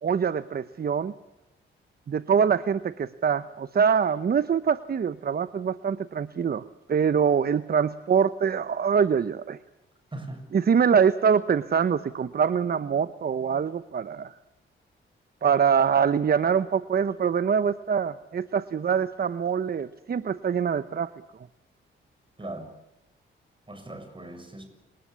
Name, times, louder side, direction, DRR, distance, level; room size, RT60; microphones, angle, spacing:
voice 1, 0.0-1.1 2.1-6.6 6.9-9.6 10.5-14.3 15.4-21.1, right 7 dB, 45° right, 15 dB, 0.8 m, -24 dB
voice 2, 10.1-10.4 22.4-22.7 23.7-24.6, right 2 dB, 25° right, 8 dB, 6.9 m, -39 dB
30.0 x 19.0 x 8.4 m, 0.89 s
cardioid pair, 70°, 21 cm